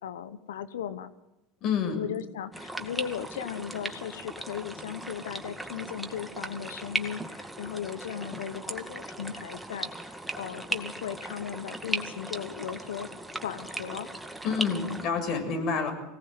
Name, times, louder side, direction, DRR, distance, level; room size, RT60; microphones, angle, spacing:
voice 1, 0.0-1.1 1.9-13.1 13.4-14.1 14.8-15.0, left 9 dB, 80° left, 13 dB, 1.1 m, -37 dB
voice 2, 1.6-2.0 14.4-16.0, left 5 dB, 50° left, 5 dB, 7.1 m, -28 dB
sound 1, 2.5-15.0, right 1 dB, 5° right, 2.2 m, -38 dB
24.5 x 18.0 x 8.1 m, 0.95 s
hypercardioid pair, 80°, 0 cm